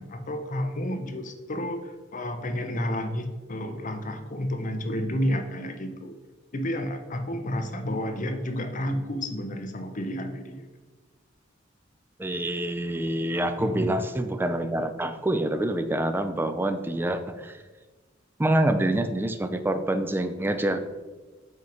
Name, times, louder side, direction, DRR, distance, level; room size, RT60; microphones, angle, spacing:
voice 1, 0.0-6.2 6.5-10.7 13.6-14.0, equal, 40° left, 7 dB, 0.7 m, -31 dB
voice 2, 12.2-17.6 18.4-20.8, right 1 dB, 10° right, 9 dB, 0.4 m, -26 dB
8.0 x 2.9 x 4.9 m, 1.3 s
head